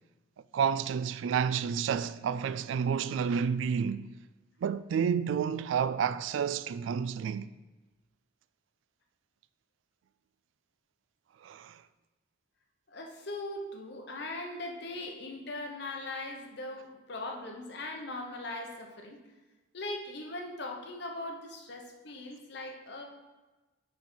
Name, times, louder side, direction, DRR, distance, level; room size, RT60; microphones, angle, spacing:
voice 1, 0.5-4.1 4.6-7.5 11.4-11.8, right 7 dB, 80° right, 0.3 m, -30 dB
voice 2, 12.9-19.2 19.7-23.0, left 2 dB, 60° left, 1.0 m, -40 dB
6.2 x 5.3 x 4.4 m
head